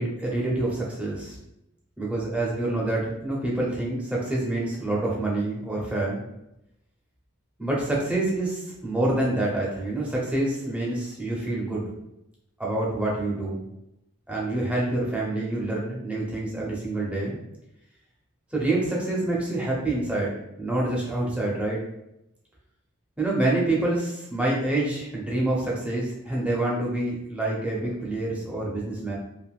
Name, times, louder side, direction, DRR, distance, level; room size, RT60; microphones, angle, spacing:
voice 1, 0.0-1.4 2.0-6.2 7.6-11.9 12.6-13.6 14.3-17.4 18.5-21.8 23.2-29.2, right 2 dB, 5° right, -4 dB, 0.7 m, -27 dB
3.5 x 2.5 x 2.4 m, 0.84 s
head